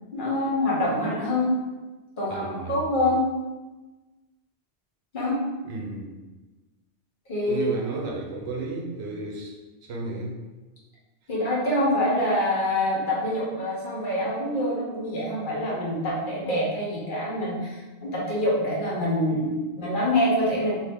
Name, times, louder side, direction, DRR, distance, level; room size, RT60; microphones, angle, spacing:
voice 1, 0.1-1.5 2.2-3.2 5.1-5.4 7.3-7.8 11.3-20.8, left 1 dB, 50° left, -5 dB, 1.0 m, -25 dB
voice 2, 2.3-2.8 5.6-6.1 7.5-9.6 9.9-10.3, right 3 dB, 70° right, 0 dB, 0.9 m, -33 dB
2.7 x 2.7 x 3.5 m, 1.2 s
omnidirectional pair, 1.2 m